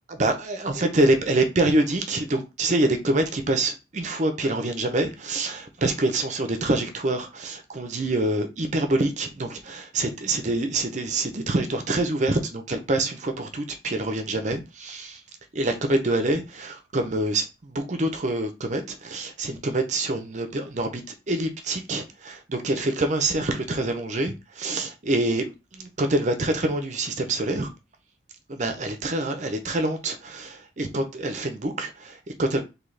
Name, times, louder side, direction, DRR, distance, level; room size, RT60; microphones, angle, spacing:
voice 1, 0.2-15.2 15.5-21.0 21.3-27.7 28.5-32.6, right 2 dB, 45° right, 0.6 m, -26 dB
3.9 x 2.8 x 3.2 m
head